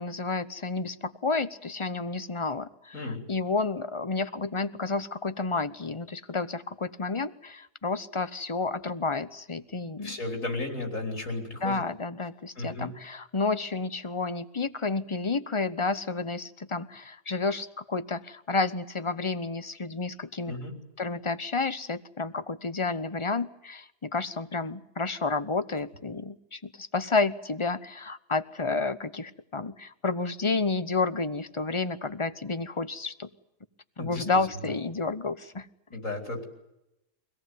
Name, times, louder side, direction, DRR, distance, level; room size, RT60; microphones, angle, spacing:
voice 1, 0.0-10.2 11.6-20.6 21.0-33.3 34.0-35.7, left 3 dB, 25° left, 13 dB, 0.9 m, -30 dB
voice 2, 10.0-11.8 12.6-12.9 20.5-20.7 34.0-34.2 34.6-34.7 35.9-36.4, left 2 dB, 75° left, 3 dB, 4.8 m, -34 dB
24.5 x 17.5 x 9.4 m, 0.87 s
omnidirectional pair, 1.4 m